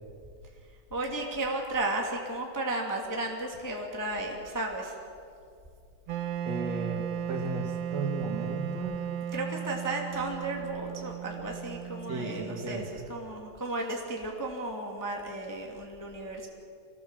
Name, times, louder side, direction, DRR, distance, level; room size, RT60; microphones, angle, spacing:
voice 1, 0.9-4.9 9.3-16.5, right 2 dB, 5° left, 0 dB, 1.6 m, -34 dB
Wind instrument woodwind instrument, 6.1-13.0, right 9 dB, 85° right, 1.4 m, -36 dB
voice 2, 6.5-9.1 12.1-12.9, right 3 dB, 50° right, 2 dB, 2.7 m, -35 dB
25.5 x 19.0 x 7.6 m, 2.4 s
omnidirectional pair, 4.3 m